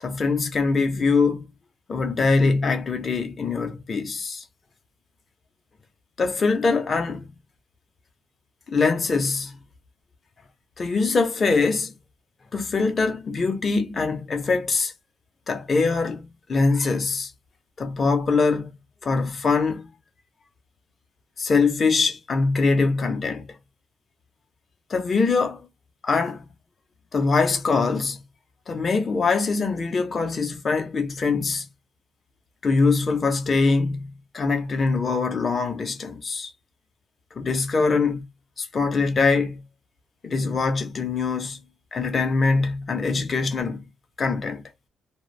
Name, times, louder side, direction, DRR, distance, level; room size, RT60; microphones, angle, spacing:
voice 1, 0.0-1.5 1.9-4.4 6.2-7.3 8.7-9.5 10.8-11.9 12.5-14.9 15.5-17.3 17.8-18.7 19.0-19.9 21.4-23.4 24.9-25.7 26.0-26.5 27.1-28.2 28.7-31.7 32.6-34.1 34.3-36.5 37.4-38.2 38.6-39.6 40.2-41.6 41.9-43.8 44.2-44.6, left 4 dB, 40° left, 0.8 m, -23 dB
2.2 x 2.0 x 3.3 m
cardioid pair, 90°, 0 cm